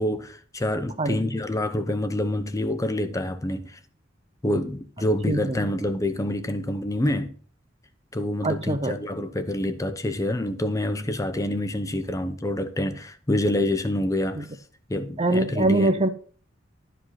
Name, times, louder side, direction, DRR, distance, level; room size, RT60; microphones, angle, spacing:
voice 1, 0.0-3.8 4.4-7.3 8.1-14.5 14.9-15.9, left 1 dB, 15° left, 0.6 m, -27 dB
voice 2, 1.0-1.3 5.3-5.7 8.4-9.0 14.4-14.5 15.2-16.1, right 2 dB, 30° right, 0.7 m, -23 dB
11.5 x 5.0 x 5.6 m
head